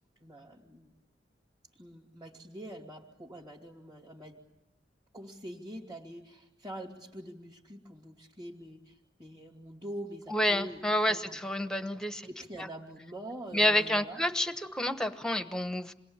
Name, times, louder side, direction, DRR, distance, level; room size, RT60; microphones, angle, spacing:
voice 1, 0.2-0.9 1.8-4.4 5.1-10.8 11.1-11.4 12.2-14.2, right 1 dB, 25° right, -3 dB, 2.7 m, -45 dB
voice 2, 10.3-12.3 13.5-15.9, left 1 dB, 5° left, 10 dB, 1.1 m, -29 dB
27.5 x 21.0 x 8.9 m, 0.92 s
head